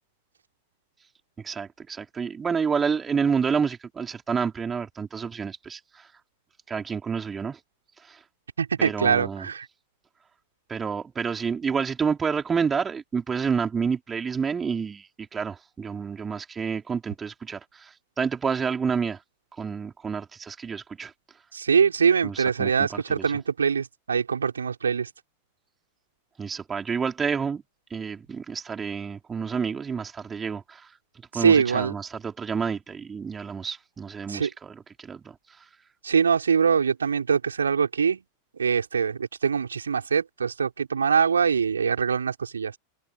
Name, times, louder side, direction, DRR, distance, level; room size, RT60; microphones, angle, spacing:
voice 1, 1.4-6.1 6.7-7.6 8.1-8.2 8.8-9.5 10.7-19.2 19.6-21.1 22.2-23.4 26.4-27.6 27.9-30.9 31.3-35.4, right 6 dB, 20° right, 5.1 m, -29 dB
voice 2, 8.6-9.6 21.5-25.1 31.3-31.9 34.3-34.5 36.0-38.2 38.6-42.7, right 6 dB, 70° right, 4.7 m, -23 dB
figure-of-eight pair, 90°, 0 cm